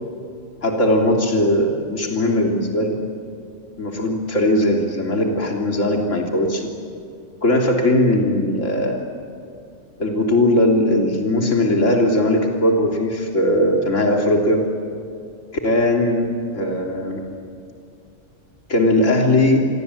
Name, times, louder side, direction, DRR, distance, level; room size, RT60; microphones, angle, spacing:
voice 1, 0.6-3.0 3.8-6.7 7.4-9.0 10.0-14.6 15.6-16.3 16.5-17.2 18.7-19.6, left 1 dB, 70° left, 1 dB, 3.6 m, -19 dB
29.5 x 23.0 x 8.5 m, 2.4 s
omnidirectional pair, 1.4 m